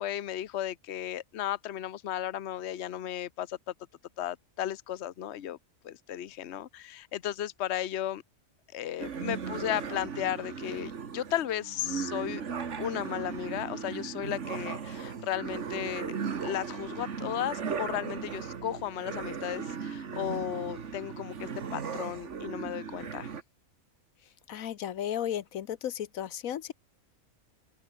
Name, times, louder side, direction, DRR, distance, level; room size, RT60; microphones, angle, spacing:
voice 1, 0.0-3.6 4.2-5.6 5.8-8.2 8.7-12.4 12.8-23.3, left 11 dB, 55° left, 1.1 m, -35 dB
sound 1, 9.0-23.4, right 6 dB, 60° right, 1.7 m, -37 dB
voice 2, 24.5-26.7, left 10 dB, 80° left, 1.3 m, -34 dB
open air
omnidirectional pair, 1.4 m